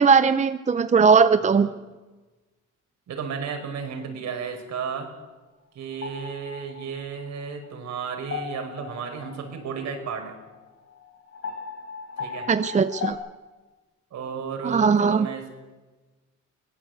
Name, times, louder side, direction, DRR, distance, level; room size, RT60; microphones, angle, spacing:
voice 1, 0.0-1.7 12.5-13.2 14.6-15.3, right 5 dB, 25° right, 12 dB, 0.7 m, -19 dB
voice 2, 1.3-1.7 3.1-5.1 5.7-10.4 12.2-12.5 14.1-15.4, right 6 dB, 65° right, 5 dB, 5.2 m, -33 dB
sound 1, 5.9-13.1, left 6 dB, 50° left, 4.9 m, -38 dB
23.0 x 17.5 x 7.9 m, 1.2 s
cardioid pair, 110°, 30 cm